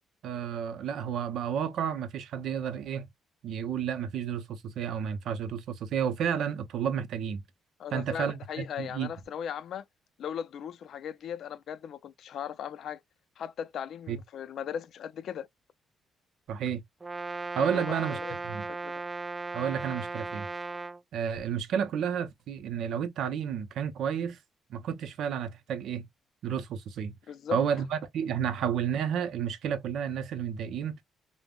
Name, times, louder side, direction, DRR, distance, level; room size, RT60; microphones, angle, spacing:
voice 1, 0.2-3.1 3.4-7.4 7.9-9.1 14.1-14.2 16.5-16.8 17.5-18.2 18.4-18.7 19.5-20.5 21.1-24.4 24.7-26.1 26.4-27.1 27.5-31.0, right 8 dB, 75° right, 0.5 m, -31 dB
voice 2, 7.8-9.8 10.2-13.0 13.4-15.5 17.6-18.3 18.7-18.9 27.3-27.6, left 8 dB, 70° left, 0.3 m, -38 dB
Brass instrument, 17.0-21.0, right 3 dB, 20° right, 0.3 m, -36 dB
3.3 x 2.0 x 2.3 m
cardioid pair, 90°, 0 cm